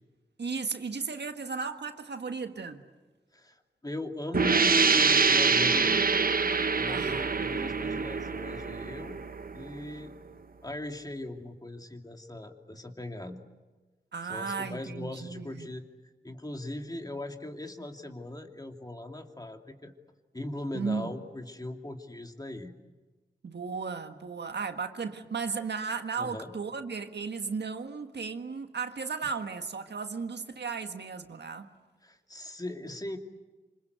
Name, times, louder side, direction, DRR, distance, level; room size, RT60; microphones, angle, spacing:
voice 1, 0.4-2.8 6.9-7.3 14.1-15.7 20.7-21.1 23.4-31.7, right 5 dB, 75° right, 1.6 m, -35 dB
voice 2, 3.3-6.0 6.7-9.2 9.5-10.1 10.6-13.4 14.2-15.8 16.2-19.9 20.3-22.7 26.2-26.5 32.0-33.2, left 1 dB, 20° left, 2.6 m, -39 dB
sound 1, 4.3-9.8, right 5 dB, 55° right, 1.0 m, -25 dB
26.5 x 26.0 x 8.1 m
wide cardioid pair, 80°, 18 cm